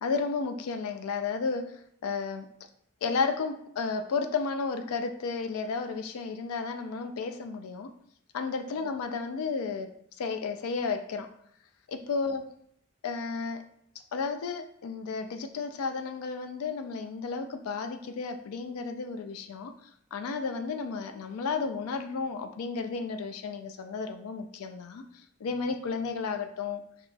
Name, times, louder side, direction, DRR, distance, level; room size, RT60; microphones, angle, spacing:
voice 1, 0.0-2.5 3.0-7.9 8.3-11.3 11.9-12.5 13.0-13.7 14.1-19.7 20.1-25.0 25.4-26.8, left 4 dB, 85° left, 7 dB, 0.4 m, -33 dB
2.8 x 2.3 x 3.9 m, 0.68 s
head